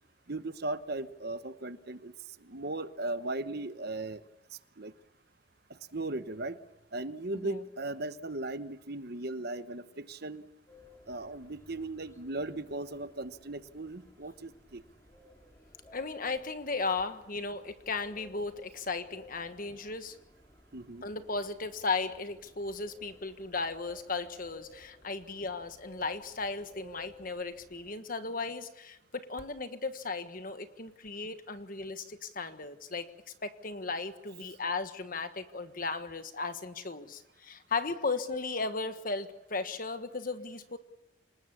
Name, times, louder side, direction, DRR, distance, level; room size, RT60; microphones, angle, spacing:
voice 1, 0.3-2.1 2.4-4.2 4.8-4.9 5.7-6.6 6.9-10.5 11.1-14.8 20.7-21.0, right 2 dB, 50° right, 11 dB, 1.0 m, -37 dB
sound 1, 10.7-28.0, left 1 dB, 15° left, 2.2 m, -57 dB
voice 2, 15.9-20.2 21.0-33.1 33.4-40.8, left 3 dB, 45° left, 9 dB, 1.4 m, -36 dB
26.5 x 19.5 x 7.1 m, 0.93 s
head